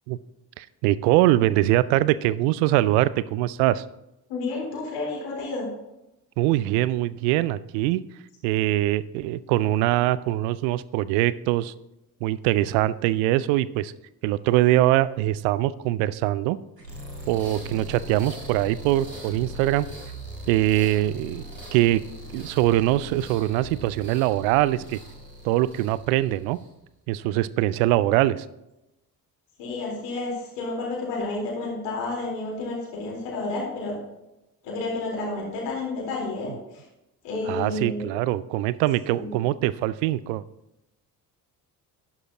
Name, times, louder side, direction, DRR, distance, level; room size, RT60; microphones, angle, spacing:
voice 1, 0.6-3.8 6.4-8.0 8.4-11.7 12.2-13.9 14.2-16.6 17.3-19.9 20.5-21.4 21.7-22.0 22.3-25.0 25.4-26.6 27.1-28.5 37.5-40.4, right 15 dB, 60° right, 18 dB, 0.6 m, -23 dB
voice 2, 4.3-5.7 29.6-34.0 34.6-36.8 37.2-38.1 39.2-39.3, left 3 dB, 60° left, -3 dB, 4.1 m, -30 dB
sound 1, 16.8-26.8, equal, 90° right, 1.8 m, -40 dB
11.5 x 11.0 x 2.9 m, 0.92 s
figure-of-eight pair, 45°, 48 cm